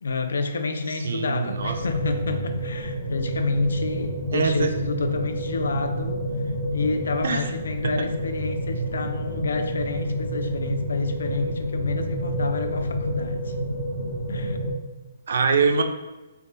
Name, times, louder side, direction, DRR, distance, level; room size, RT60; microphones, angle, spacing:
voice 1, 0.0-6.2 6.7-13.5 14.3-14.6, left 3 dB, 85° left, 7 dB, 0.4 m, -29 dB
voice 2, 1.0-1.7 4.3-4.7 7.2-7.5 7.8-7.9 15.3-15.8, right 5 dB, 70° right, 7 dB, 0.3 m, -23 dB
sound 1, 1.6-14.7, equal, 25° left, 1.1 m, -29 dB
3.3 x 2.2 x 2.6 m, 1.1 s
hypercardioid pair, 155°, 0 cm